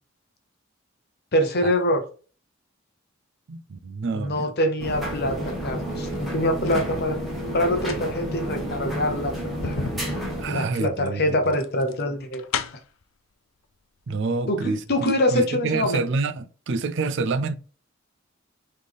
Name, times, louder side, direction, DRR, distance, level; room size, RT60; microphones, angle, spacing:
voice 1, 1.3-2.0 4.1-7.2 7.5-9.3 9.6-9.8 10.5-12.4 14.5-16.0, left 1 dB, 55° left, 0.9 m, -24 dB
voice 2, 3.5-4.5 10.4-11.5 14.1-17.5, right 4 dB, 60° right, 0.4 m, -27 dB
sound 1, 4.8-10.5, equal, ahead, 1.4 m, -30 dB
sound 2, 6.1-6.9 7.6-13.0 14.0-14.1 14.5-15.3 15.6-15.7, left 6 dB, 80° left, 0.5 m, -36 dB
4.1 x 3.3 x 3.5 m
head